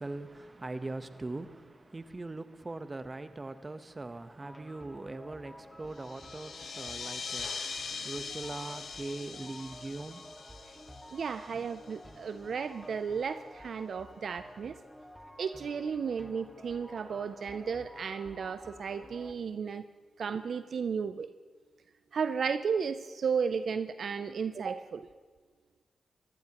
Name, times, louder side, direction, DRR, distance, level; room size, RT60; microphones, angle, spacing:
voice 1, 0.0-7.8 8.0-10.3, right 2 dB, 30° right, 0.9 m, -41 dB
sound 1, 4.4-19.3, equal, ahead, 1.9 m, -51 dB
sound 2, 6.0-12.1, left 5 dB, 70° left, 1.1 m, -42 dB
voice 2, 11.1-14.7 15.4-19.8 20.2-21.3 22.1-25.0, right 6 dB, 70° right, 0.4 m, -34 dB
22.5 x 15.0 x 3.0 m
cardioid pair, 55°, 0 cm